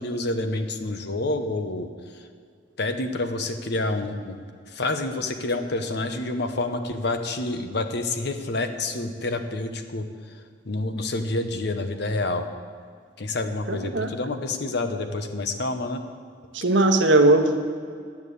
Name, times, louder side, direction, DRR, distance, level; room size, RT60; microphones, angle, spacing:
voice 1, 0.0-2.3 2.8-4.4 4.7-10.4 10.6-12.5 13.2-16.0, left 2 dB, 65° left, 8 dB, 1.0 m, -28 dB
voice 2, 13.7-14.1 16.5-17.6, right 2 dB, 85° right, 6 dB, 1.1 m, -19 dB
10.5 x 7.3 x 8.2 m, 2.2 s
head